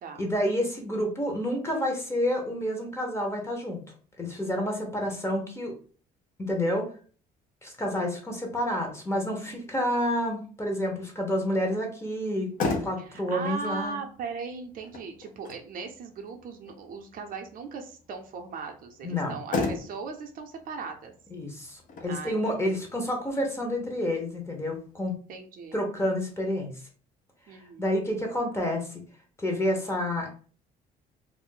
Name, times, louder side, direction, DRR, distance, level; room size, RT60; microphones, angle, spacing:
voice 1, 0.2-3.8 4.2-5.7 6.4-6.9 7.6-12.5 12.8-14.0 19.0-19.4 21.3-25.2 25.7-26.8 27.5-29.0 29.4-30.3, left 1 dB, 15° left, 1 dB, 0.8 m, -29 dB
Motor vehicle (road), 12.2-25.1, left 3 dB, 50° left, 0.7 m, -38 dB
voice 2, 13.0-21.1 22.1-22.8 25.3-25.8 27.5-28.0, right 5 dB, 55° right, 4 dB, 0.6 m, -38 dB
2.5 x 2.0 x 3.7 m, 0.41 s
cardioid pair, 110°, 17 cm